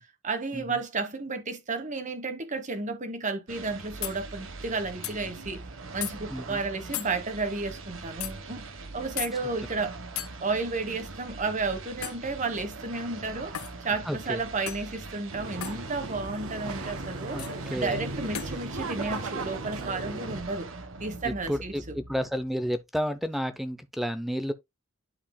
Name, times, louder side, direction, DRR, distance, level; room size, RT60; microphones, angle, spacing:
voice 1, 0.2-5.6 5.9-8.6 8.9-10.0 10.4-13.6 13.8-20.7 21.0-21.9, right 3 dB, 35° right, 1.3 m, -32 dB
sound 1, 3.5-22.5, right 3 dB, 65° right, 1.3 m, -42 dB
sound 2, 4.0-4.2 5.0-5.2 6.0-6.1 6.9-7.1 8.2-8.3 9.2-9.3 10.2-10.3 12.0-12.3 13.5-13.8 14.7-14.9 15.6-15.8 17.4-17.5 18.3-18.5, left 12 dB, 85° left, 0.7 m, -35 dB
voice 2, 6.3-6.6 14.0-14.4 17.3-18.0 21.2-24.5, equal, ahead, 0.5 m, -31 dB
sound 3, 15.3-20.4, right 2 dB, 90° right, 1.5 m, -36 dB
11.5 x 4.8 x 2.2 m
head